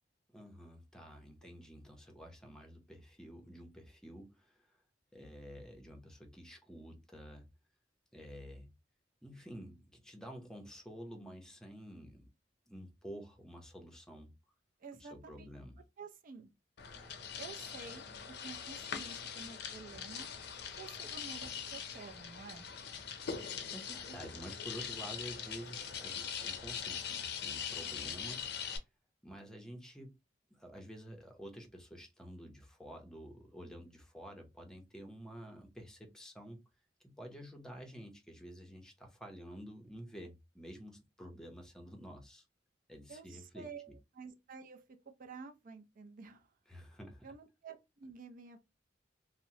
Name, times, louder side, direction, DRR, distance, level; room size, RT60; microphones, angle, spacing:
voice 1, 0.3-4.6 5.1-7.5 8.1-8.7 9.2-12.3 12.7-14.3 15.0-15.8 23.7-28.8 29.2-30.2 30.5-36.6 37.0-42.4 42.9-44.0 46.7-47.3, equal, 5° left, 0.6 m, -50 dB
voice 2, 14.8-15.5 16.0-16.5 17.4-20.3 20.8-22.7 24.1-24.2 43.1-44.8 45.2-46.5 47.2-48.6, right 5 dB, 50° right, 0.4 m, -50 dB
sound 1, 16.8-28.8, left 7 dB, 65° left, 0.5 m, -42 dB
2.8 x 2.0 x 2.7 m
head